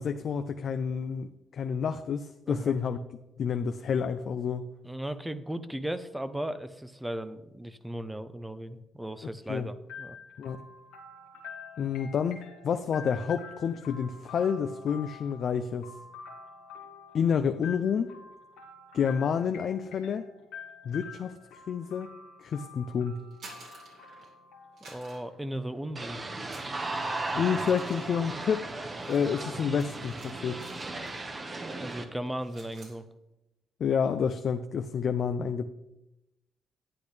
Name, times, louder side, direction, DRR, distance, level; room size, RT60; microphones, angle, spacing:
voice 1, 0.0-3.0 3.4-4.7 9.5-9.7 10.4-10.6 11.8-15.9 17.1-18.1 18.9-20.3 20.9-22.1 22.4-23.1 27.3-28.6 29.1-30.6 33.8-35.7, left 7 dB, 60° left, 8 dB, 0.5 m, -29 dB
voice 2, 4.8-10.2 24.9-26.2 31.8-33.0, right 1 dB, 10° right, 12 dB, 0.7 m, -36 dB
sound 1, 9.9-25.7, left 5 dB, 85° left, 1.2 m, -47 dB
sound 2, 23.2-24.4 24.8-26.0 26.4-31.3 31.6-31.9 32.2-33.0, right 3 dB, 70° right, 3.3 m, -53 dB
sound 3, 26.0-32.0, right 2 dB, 30° right, 1.2 m, -36 dB
10.5 x 8.4 x 3.4 m, 0.94 s
supercardioid pair, 70°, 0 cm